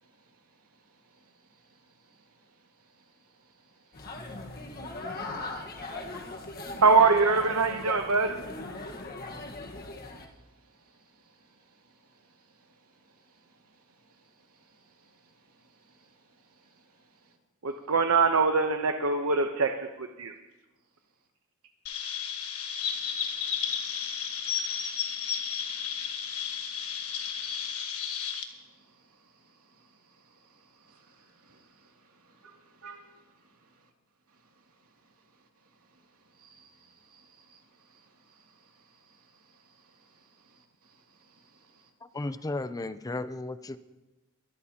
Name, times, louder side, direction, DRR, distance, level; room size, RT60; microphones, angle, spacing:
voice 1, 0.0-6.8 9.4-9.5 10.1-17.4 22.8-27.7 28.5-33.9 34.3-41.9, right 4 dB, 90° right, 0 dB, 2.6 m, -61 dB
sound 1, 3.9-10.3, left 2 dB, 45° left, 1.4 m, -39 dB
voice 2, 6.8-8.3 17.6-19.7 20.0-20.3, right 4 dB, 70° right, 5 dB, 0.9 m, -23 dB
Chirp tweet, 21.9-28.4, left 7 dB, 75° left, 1.4 m, -33 dB
voice 3, 42.0-43.8, left 2 dB, 15° left, 13 dB, 0.4 m, -34 dB
23.0 x 13.0 x 2.9 m, 1.1 s
head